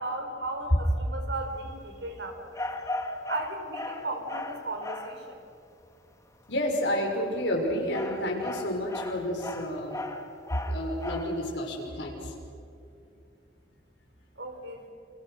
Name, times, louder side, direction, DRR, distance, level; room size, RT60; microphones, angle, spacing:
voice 1, 0.0-2.4 3.3-5.4 14.4-14.8, right 2 dB, 70° right, 5 dB, 4.4 m, -35 dB
sound 1, 2.5-5.2 7.3-11.4, left 2 dB, 15° left, 1.9 m, -37 dB
voice 2, 6.5-10.0 10.6-12.3, equal, 75° left, 1 dB, 5.9 m, -30 dB
29.5 x 28.0 x 6.5 m, 2.4 s
head